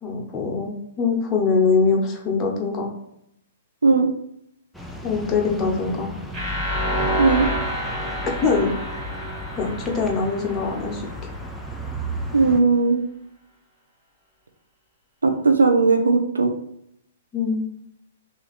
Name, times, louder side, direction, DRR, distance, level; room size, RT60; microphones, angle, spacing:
voice 1, 0.0-2.9 5.0-6.1 8.4-8.7 9.6-11.1 17.3-17.6, left 4 dB, 20° left, -1 dB, 0.9 m, -23 dB
sound 1, 4.7-12.6, right 1 dB, 5° left, 0.4 m, -35 dB
sound 2, 6.3-11.2, equal, 20° right, 1.3 m, -28 dB
voice 2, 7.2-7.5 12.3-13.0 15.2-16.5, right 4 dB, 80° right, 4 dB, 0.5 m, -17 dB
2.8 x 2.6 x 4.0 m, 0.74 s
figure-of-eight pair, 115°, 0 cm